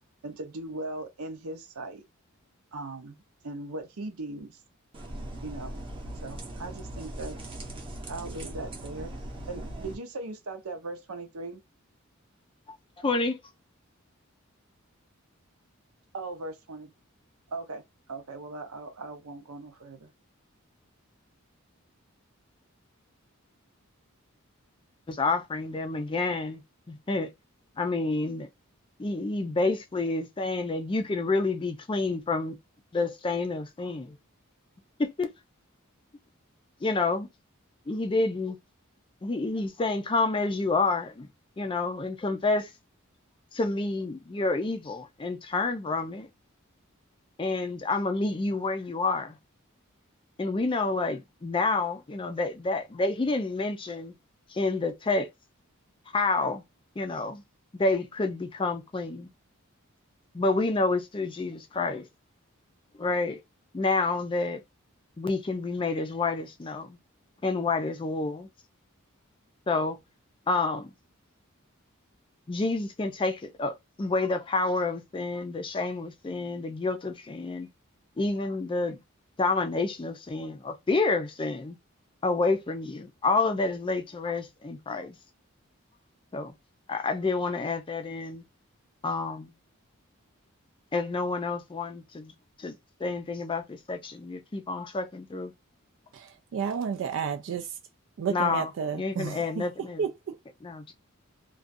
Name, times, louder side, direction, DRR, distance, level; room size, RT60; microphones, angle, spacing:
voice 1, 0.2-2.1 2.7-4.6 5.4-5.8 6.2-7.4 8.1-9.1 9.5-11.6 16.1-16.9 17.5-17.8 18.1-20.1, right 2 dB, 90° right, 0.7 m, -39 dB
sound 1, 4.9-9.9, right 1 dB, 25° right, 0.7 m, -39 dB
voice 2, 13.0-13.4 25.1-26.6 26.9-27.3 27.8-28.5 29.0-32.6 32.9-34.2 35.0-35.3 36.8-37.3 37.9-38.6 39.2-41.3 41.6-42.7 43.5-46.3 47.4-49.4 50.4-54.1 54.5-55.3 56.1-56.6 57.0-57.4 57.7-59.3 60.3-62.1 63.0-63.4 63.7-64.6 65.2-67.0 67.4-68.5 69.7-70.0 70.5-70.9 72.5-77.7 78.2-79.0 79.4-81.8 82.2-85.2 86.3-86.5 86.9-88.4 89.0-89.5 90.9-92.3 92.6-95.5 98.3-100.0 100.6-100.9, left 3 dB, 25° left, 0.4 m, -29 dB
voice 3, 96.5-97.7 98.2-99.6 100.0-100.4, right 6 dB, 60° right, 0.3 m, -31 dB
2.4 x 2.3 x 2.5 m
head